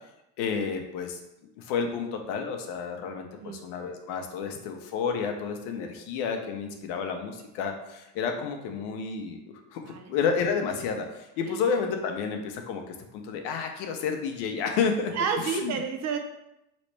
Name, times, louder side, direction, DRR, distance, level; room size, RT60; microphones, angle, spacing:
voice 1, 0.4-1.2 1.6-9.4 9.7-15.1 15.4-15.8, left 6 dB, 70° left, 4 dB, 0.8 m, -30 dB
voice 2, 9.8-10.1 15.1-16.2, right 6 dB, 40° right, 4 dB, 0.6 m, -30 dB
4.1 x 3.1 x 3.2 m, 0.88 s
supercardioid pair, 100°, 42 cm